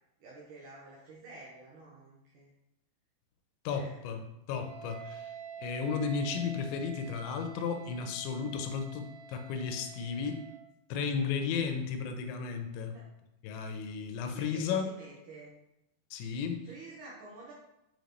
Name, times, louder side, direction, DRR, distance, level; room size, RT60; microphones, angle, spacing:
voice 1, 0.2-2.5 3.7-4.0 7.9-8.0 11.1-11.4 12.9-13.1 14.3-15.5 16.6-17.5, right 2 dB, 90° right, -6 dB, 1.7 m, -50 dB
voice 2, 3.7-5.3 5.6-10.4 10.9-13.0 13.4-14.8 16.1-16.7, left 6 dB, 90° left, 6 dB, 2.9 m, -34 dB
Wind instrument woodwind instrument, 4.5-10.7, right 4 dB, 70° right, 2.5 m, -48 dB
6.9 x 5.2 x 3.0 m, 0.87 s
omnidirectional pair, 5.2 m